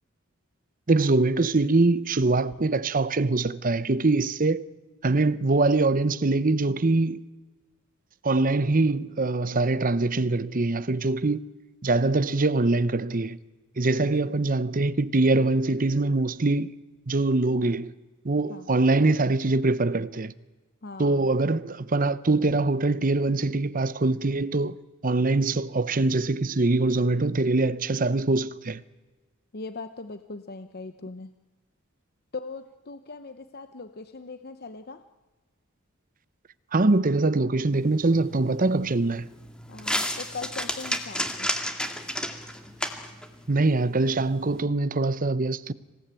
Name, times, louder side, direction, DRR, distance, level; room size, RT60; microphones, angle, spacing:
voice 1, 0.9-4.7 5.0-7.2 8.2-11.4 11.8-13.4 13.8-16.7 17.1-17.9 18.2-20.3 21.0-24.8 25.0-28.8 36.7-39.3 43.5-45.7, right 2 dB, 40° right, 0.8 m, -23 dB
voice 2, 20.8-21.3 29.5-31.3 32.3-35.0 39.7-41.5, left 3 dB, 50° left, 0.9 m, -40 dB
sound 1, 37.7-44.6, equal, 5° left, 2.2 m, -33 dB
26.5 x 17.5 x 9.0 m
head